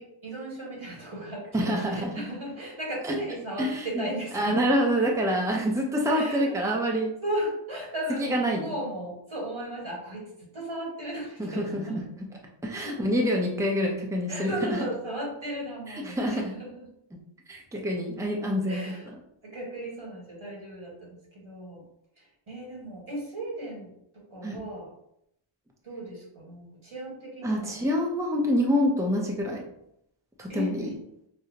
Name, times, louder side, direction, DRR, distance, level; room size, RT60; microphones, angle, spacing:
voice 1, 0.0-5.1 6.1-6.6 7.2-12.0 12.8-12.9 14.3-16.8 18.7-19.1 19.4-21.8 22.2-24.9 25.8-27.8 30.5-31.0, right 1 dB, 70° right, -3 dB, 1.5 m, -36 dB
voice 2, 1.5-2.2 3.0-3.2 3.6-4.1 4.3-7.2 8.2-8.7 11.4-12.3 12.6-14.8 15.9-16.5 17.5-18.9 24.4-24.6 27.4-29.7 30.4-31.0, equal, 5° right, 0 dB, 0.6 m, -27 dB
4.9 x 2.0 x 2.8 m, 0.76 s
wide cardioid pair, 50°, 49 cm